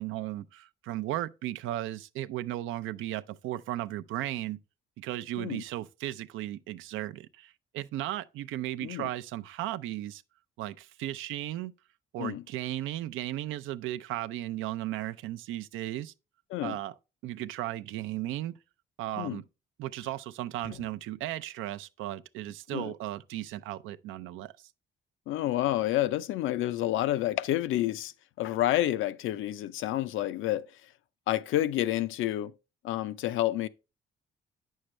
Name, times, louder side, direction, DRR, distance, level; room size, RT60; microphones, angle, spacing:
voice 1, 0.0-4.6 5.0-10.2 10.6-11.7 12.1-16.1 16.6-16.9 17.2-18.5 19.0-19.4 19.8-24.5, right 14 dB, 90° right, 0.5 m, -35 dB
voice 2, 25.3-28.1 28.4-30.7 31.3-32.5 32.8-33.7, left 14 dB, 85° left, 0.5 m, -29 dB
8.9 x 6.4 x 3.2 m
cardioid pair, 90°, 20 cm